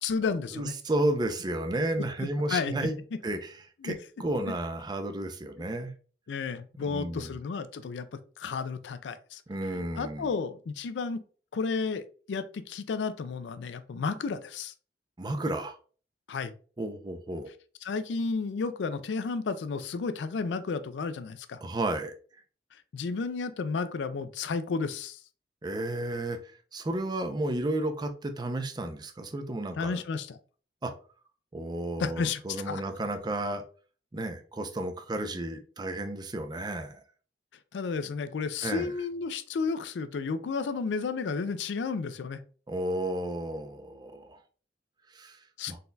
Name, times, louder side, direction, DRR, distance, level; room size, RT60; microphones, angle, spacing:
voice 1, 0.0-0.7 2.2-2.7 3.8-4.0 5.6-5.7 6.3-8.1 8.4-9.4 10.0-11.2 11.5-14.7 16.3-16.5 17.8-21.6 22.9-25.2 29.8-30.4 32.0-32.8 37.7-42.4 45.6-45.7, left 4 dB, 85° left, 12 dB, 0.4 m, -32 dB
voice 2, 0.5-5.9 6.8-7.3 9.5-10.3 15.2-15.8 16.8-17.5 21.6-22.1 25.6-30.0 30.8-30.9 31.5-33.6 34.1-37.0 38.6-38.9 42.7-44.4 45.1-45.4 45.7-45.8, right 1 dB, 25° right, 7 dB, 0.5 m, -32 dB
4.0 x 3.9 x 2.2 m, 0.40 s
head